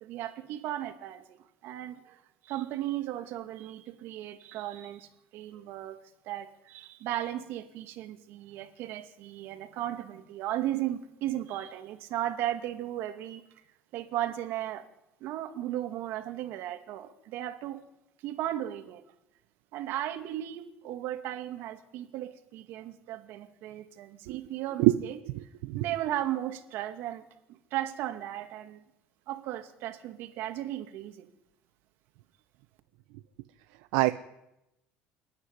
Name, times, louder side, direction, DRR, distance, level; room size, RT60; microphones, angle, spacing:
voice 1, 0.0-1.4 1.6-6.0 6.2-13.4 13.9-14.8 15.2-17.8 18.2-19.0 19.7-25.2 25.7-27.3 27.7-28.8 29.3-31.3, right 13 dB, 65° right, 6 dB, 2.3 m, -36 dB
voice 2, 25.3-25.9 33.9-34.1, right 18 dB, 85° right, 10 dB, 0.8 m, -24 dB
28.5 x 9.8 x 9.8 m, 0.90 s
cardioid pair, 120°, 4 cm